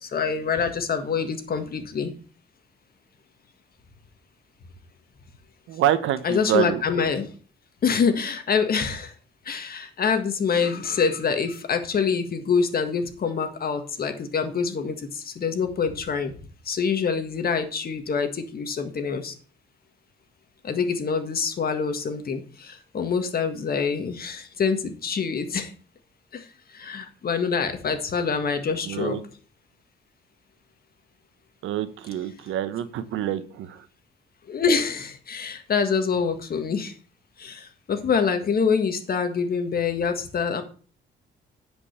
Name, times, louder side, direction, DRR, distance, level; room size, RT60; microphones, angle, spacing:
voice 1, 0.0-2.1 6.2-7.3 7.8-9.1 9.5-16.4 16.7-19.3 20.6-25.7 26.3-26.5 26.7-29.2 34.5-36.9 37.4-40.6, left 6 dB, 50° left, 8 dB, 1.8 m, -25 dB
voice 2, 5.7-6.8 28.8-29.2 31.6-33.8, right 12 dB, 80° right, 13 dB, 1.0 m, -26 dB
9.9 x 5.4 x 6.5 m, 0.40 s
cardioid pair, 90°, 20 cm